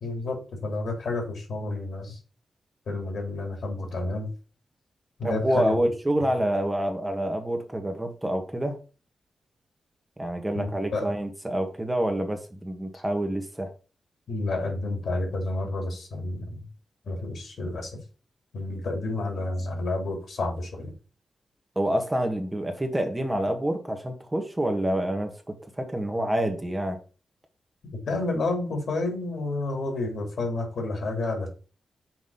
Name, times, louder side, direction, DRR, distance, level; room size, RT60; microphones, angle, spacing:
voice 1, 0.0-2.2 2.9-4.3 5.2-5.7 10.5-11.1 14.3-16.7 17.0-17.9 18.5-20.9 27.9-31.5, left 2 dB, 75° left, 3 dB, 2.8 m, -30 dB
voice 2, 5.2-8.8 10.2-13.7 21.7-27.0, right 1 dB, 15° right, 5 dB, 1.5 m, -27 dB
5.9 x 4.1 x 5.4 m, 0.36 s
cardioid pair, 75°, 0 cm